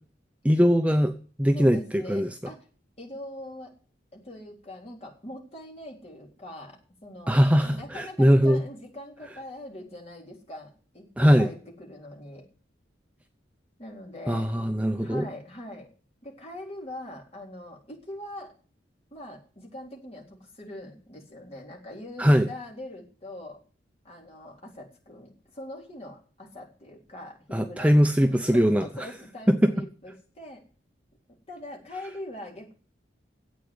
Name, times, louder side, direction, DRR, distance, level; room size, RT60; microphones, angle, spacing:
voice 1, 0.4-1.1 1.4-2.3 7.3-8.6 11.2-11.5 14.3-15.3 22.2-22.5 27.5-28.8 29.5-29.7, equal, 5° right, 6 dB, 0.6 m, -21 dB
voice 2, 1.5-2.7 3.0-3.7 4.1-12.5 13.8-14.5 15.0-15.9 16.2-18.5 19.1-23.6 24.0-30.6 31.5-32.7, left 1 dB, 35° left, -1 dB, 3.8 m, -42 dB
10.5 x 8.3 x 9.6 m, 0.41 s
head